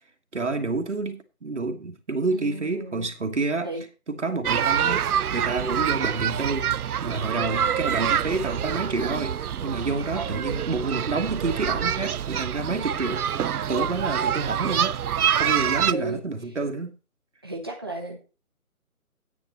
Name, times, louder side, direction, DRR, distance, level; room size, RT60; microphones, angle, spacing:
voice 1, 0.3-3.7 4.1-5.0 5.3-6.7 7.0-13.4 13.7-15.0 15.4-17.0, right 3 dB, 50° right, 1.4 m, -28 dB
voice 2, 2.3-3.1 3.6-3.8 10.1-10.3 15.9-16.2 17.4-18.2, right 2 dB, 15° right, 1.1 m, -34 dB
sound 1, 4.4-15.9, right 9 dB, 80° right, 0.6 m, -26 dB
9.5 x 9.1 x 4.2 m
figure-of-eight pair, 175°, 44 cm